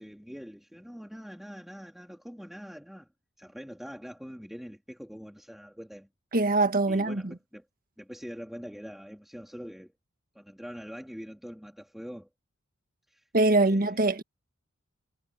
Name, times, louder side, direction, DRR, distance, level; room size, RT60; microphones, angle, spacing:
voice 1, 0.0-3.1 3.4-6.1 6.9-7.6 8.0-9.9 10.3-12.3 13.1-14.1, equal, ahead, 2.4 m, -44 dB
voice 2, 6.3-7.3 13.3-14.2, right 2 dB, 45° right, 1.5 m, -23 dB
head